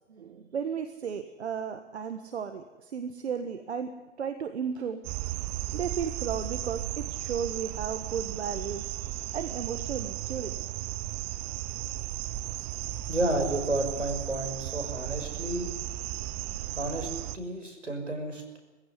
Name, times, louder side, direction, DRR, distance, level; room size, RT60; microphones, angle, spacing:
voice 1, 0.1-3.9 4.2-5.0 5.7-10.5, right 7 dB, 65° right, 8 dB, 1.6 m, -34 dB
sound 1, 5.0-17.4, right 14 dB, 25° right, 0.7 m, -35 dB
voice 2, 13.1-15.7 16.7-17.1 17.3-18.6, right 1 dB, 85° right, 5 dB, 5.7 m, -31 dB
21.0 x 15.5 x 9.8 m, 1.2 s
figure-of-eight pair, 115°, 36 cm